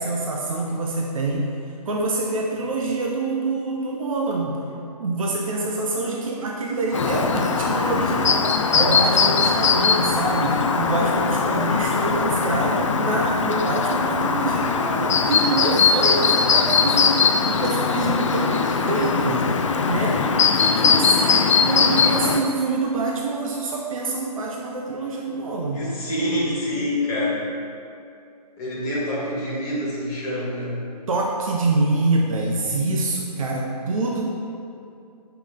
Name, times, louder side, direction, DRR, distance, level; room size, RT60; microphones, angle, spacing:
voice 1, 0.0-1.5 1.8-4.6 5.0-17.2 17.4-19.5 19.9-20.2 20.5-25.8 31.1-34.3, right 2 dB, 55° right, -1 dB, 0.9 m, -25 dB
Chirp tweet, 6.9-22.4, left 5 dB, 50° left, 0.5 m, -20 dB
voice 2, 25.7-27.4 28.6-30.8, left 1 dB, 15° left, -7 dB, 1.8 m, -26 dB
8.2 x 5.7 x 3.7 m, 2.5 s
figure-of-eight pair, 135°, 21 cm